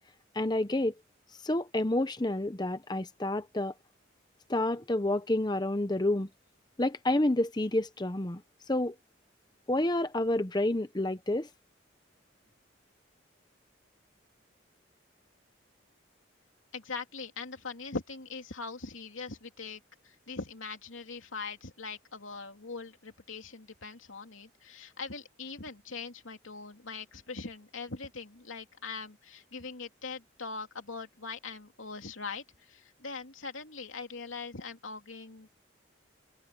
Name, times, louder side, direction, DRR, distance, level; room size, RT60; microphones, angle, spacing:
voice 1, 0.3-0.9 1.4-3.7 4.5-6.3 6.8-8.4 8.7-8.9 9.7-11.5, left 1 dB, 20° left, 0.8 m, -29 dB
voice 2, 16.7-19.8 20.0-35.5, left 4 dB, 90° left, 2.9 m, -41 dB
head